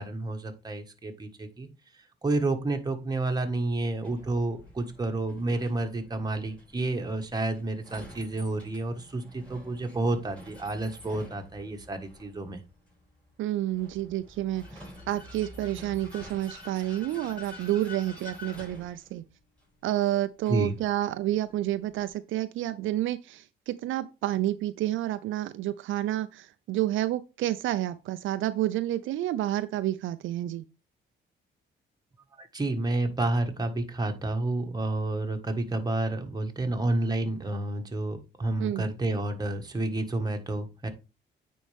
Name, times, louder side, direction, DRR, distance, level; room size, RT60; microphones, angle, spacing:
voice 1, 0.0-1.7 2.2-12.6 20.5-20.7 32.4-40.9, right 2 dB, 20° right, 1.5 m, -30 dB
Vehicle, 4.0-22.1, left 2 dB, 5° left, 5.0 m, -49 dB
voice 2, 13.4-14.6 15.1-19.2 19.8-30.6 38.6-38.9, right 14 dB, 80° right, 0.5 m, -29 dB
9.2 x 4.3 x 3.4 m
cardioid pair, 90°, 20 cm